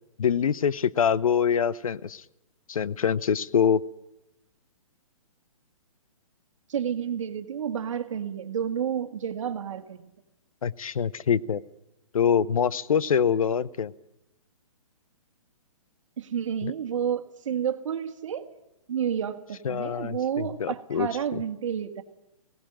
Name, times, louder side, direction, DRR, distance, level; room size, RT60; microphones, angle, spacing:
voice 1, 0.2-2.2 2.7-3.8 10.6-11.6 12.1-13.9 16.6-16.7 19.6-21.4, left 7 dB, 75° left, 18 dB, 0.7 m, -25 dB
voice 2, 6.7-10.1 16.2-18.5 18.9-22.0, right 8 dB, 60° right, 8 dB, 1.8 m, -30 dB
17.5 x 17.5 x 9.0 m, 0.90 s
hypercardioid pair, 140°, 18 cm